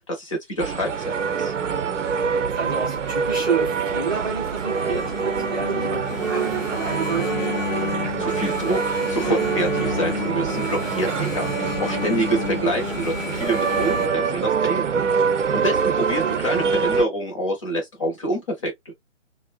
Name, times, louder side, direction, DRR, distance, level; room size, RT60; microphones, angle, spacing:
voice 1, 0.1-1.5 8.2-11.5 11.8-15.1 15.5-18.9, right 1 dB, 25° left, 0.7 m, -27 dB
sound 1, 0.6-17.0, right 6 dB, 70° right, 0.6 m, -25 dB
voice 2, 2.4-7.4, right 5 dB, 20° right, 0.6 m, -30 dB
Engine, 2.7-14.1, left 9 dB, 90° left, 0.6 m, -33 dB
2.5 x 2.1 x 2.4 m
figure-of-eight pair, 145°, 38 cm